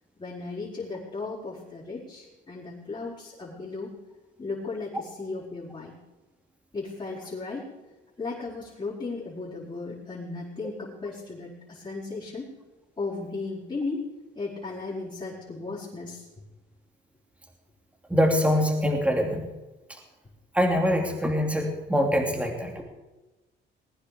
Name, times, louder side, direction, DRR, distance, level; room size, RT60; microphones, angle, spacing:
voice 1, 0.2-3.9 4.4-5.9 6.7-7.7 8.2-12.5 13.0-14.1 14.3-16.3, left 3 dB, 30° left, -10 dB, 5.0 m, -35 dB
voice 2, 18.1-19.5 20.5-22.8, equal, 5° right, 1 dB, 2.9 m, -24 dB
20.5 x 9.8 x 5.2 m, 1.1 s
cardioid pair, 90°, 20 cm